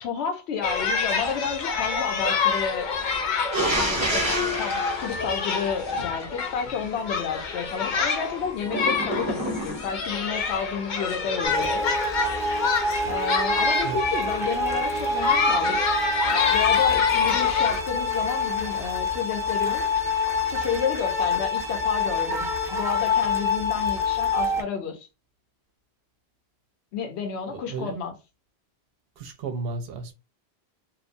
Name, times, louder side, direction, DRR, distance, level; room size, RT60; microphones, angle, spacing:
voice 1, 0.0-2.9 3.8-11.9 13.0-15.8 16.5-19.8 20.4-25.1 26.9-28.2, left 6 dB, 90° left, 1.0 m, -31 dB
sound 1, 0.6-17.8, left 5 dB, 55° left, 0.6 m, -27 dB
sound 2, 3.5-6.2 8.6-10.1, equal, 30° right, 0.8 m, -28 dB
sound 3, 11.4-24.6, left 3 dB, 5° right, 0.4 m, -26 dB
voice 2, 27.5-28.0 29.2-30.1, right 4 dB, 70° right, 0.8 m, -33 dB
2.9 x 2.0 x 2.5 m
omnidirectional pair, 1.1 m